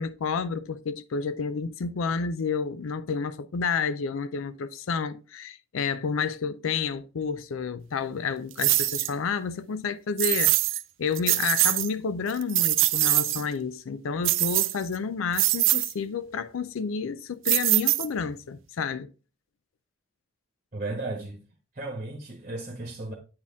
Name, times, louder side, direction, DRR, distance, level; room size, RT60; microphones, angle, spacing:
voice 1, 0.0-10.5 11.0-19.1, left 5 dB, 85° left, 0.4 m, -30 dB
sound 1, 8.6-9.1 10.2-10.8 11.2-11.9 12.3-13.4 14.2-15.0 15.3-15.9 17.5-18.3, right 17 dB, 75° right, 0.5 m, -23 dB
voice 2, 20.7-21.4 21.7-23.1, right 2 dB, 35° right, 1.1 m, -34 dB
8.7 x 4.2 x 3.5 m
head